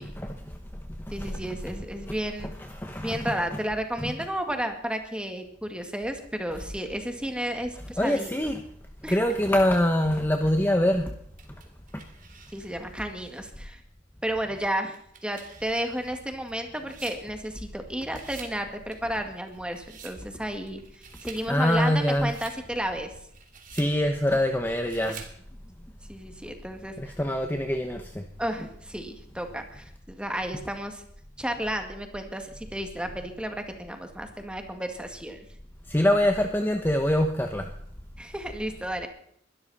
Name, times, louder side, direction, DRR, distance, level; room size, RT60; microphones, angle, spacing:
voice 1, 0.0-1.7 2.1-2.2 2.4-3.3 4.0-4.1 8.0-8.6 9.1-11.1 11.9-12.0 21.5-22.3 23.7-25.2 27.0-28.2 35.9-37.7, left 1 dB, 10° left, 5 dB, 1.0 m, -25 dB
voice 2, 1.1-2.5 3.0-8.3 9.0-9.2 12.5-13.8 14.2-15.0 15.2-23.1 26.1-27.2 28.4-31.0 31.4-35.5 38.2-39.1, right 1 dB, 5° right, 5 dB, 2.0 m, -32 dB
sound 1, 11.4-12.9 13.5-13.6 14.8-17.8 18.0-18.6 18.9-20.2 20.7-21.5 21.9-22.6 23.1-24.0 24.7-25.4, right 6 dB, 45° right, 2.8 m, -48 dB
21.5 x 12.5 x 4.2 m, 0.67 s
head